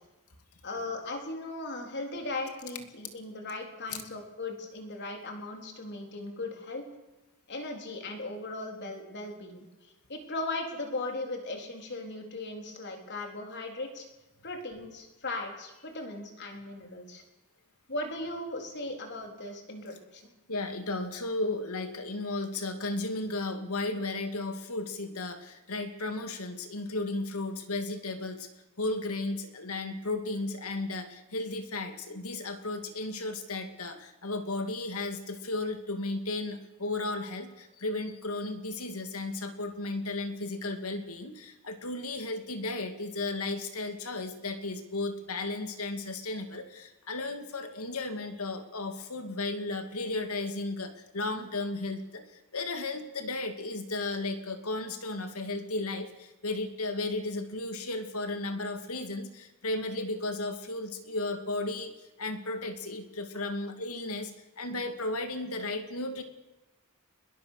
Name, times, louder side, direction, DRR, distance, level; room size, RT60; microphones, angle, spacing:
voice 1, 0.6-6.9 7.5-14.1 14.4-17.2 17.9-20.2, left 2 dB, 55° left, 3 dB, 4.0 m, -38 dB
voice 2, 20.5-28.5 28.8-52.3 52.5-61.9 62.2-64.3 64.6-66.2, left 2 dB, 85° left, 7 dB, 2.4 m, -34 dB
21.0 x 20.5 x 6.6 m, 1.1 s
head